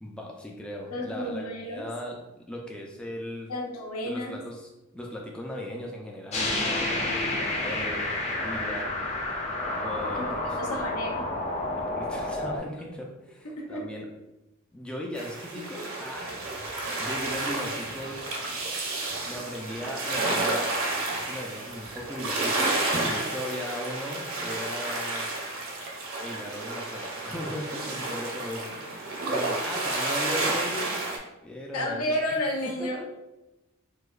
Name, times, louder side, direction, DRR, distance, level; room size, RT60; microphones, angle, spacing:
voice 1, 0.0-3.5 4.0-9.0 9.8-10.6 11.8-14.1 14.7-16.4 17.0-18.3 19.3-20.8 21.3-25.7 26.2-31.0 31.4-32.1 32.6-33.0, left 1 dB, 5° left, -1 dB, 0.3 m, -38 dB
voice 2, 0.9-1.9 3.5-4.4 10.1-10.3 10.6-11.3 13.4-13.9 31.7-33.0, left 1 dB, 75° left, 0 dB, 0.7 m, -31 dB
sound 1, 6.3-12.6, left 2 dB, 30° left, 0.7 m, -30 dB
sound 2, 15.2-31.2, right 2 dB, 65° right, 0.7 m, -31 dB
4.6 x 2.1 x 2.4 m, 0.97 s
head